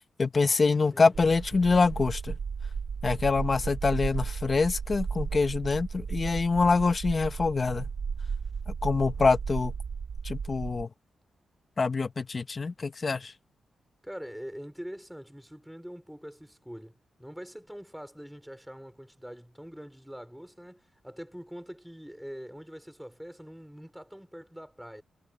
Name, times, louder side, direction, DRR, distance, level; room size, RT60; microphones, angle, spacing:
voice 1, 0.2-2.3 3.0-7.8 8.8-9.7 10.2-10.9 11.8-13.3, left 4 dB, 35° left, 1.2 m, -25 dB
voice 2, 0.9-1.3 14.0-25.0, equal, ahead, 5.2 m, -44 dB
sound 1, 1.1-10.8, right 6 dB, 60° right, 1.1 m, -34 dB
wide cardioid pair, 120°, 0 cm